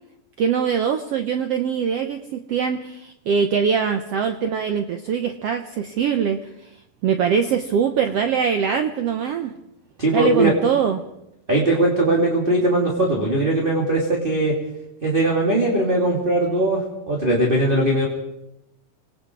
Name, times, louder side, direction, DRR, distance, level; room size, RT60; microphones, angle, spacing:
voice 1, 0.4-6.7 7.0-9.5 10.1-11.0, right 7 dB, 90° right, 7 dB, 1.3 m, -22 dB
voice 2, 10.0-10.5 11.5-14.6 15.0-18.1, right 1 dB, 15° right, -1 dB, 2.7 m, -20 dB
27.0 x 20.0 x 4.8 m, 0.84 s
omnidirectional pair, 4.1 m